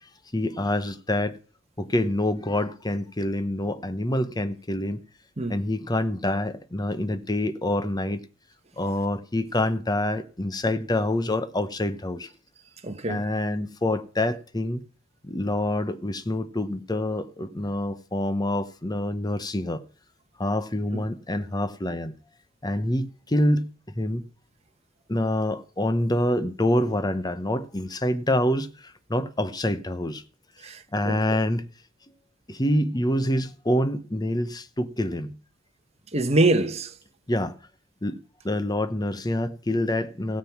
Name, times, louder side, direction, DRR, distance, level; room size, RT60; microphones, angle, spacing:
voice 1, 0.3-1.4 1.8-5.0 5.5-8.2 8.8-12.3 13.1-14.8 15.2-19.8 20.4-22.1 22.6-23.7 23.9-24.2 25.1-30.2 30.9-31.7 32.5-35.3 37.3-37.5 38.0-38.2 38.4-40.4, left 1 dB, 20° left, 0.9 m, -26 dB
voice 2, 12.8-13.3 20.9-21.0 30.6-31.2 36.1-37.0, right 2 dB, 30° right, 1.1 m, -24 dB
16.5 x 7.7 x 5.9 m
head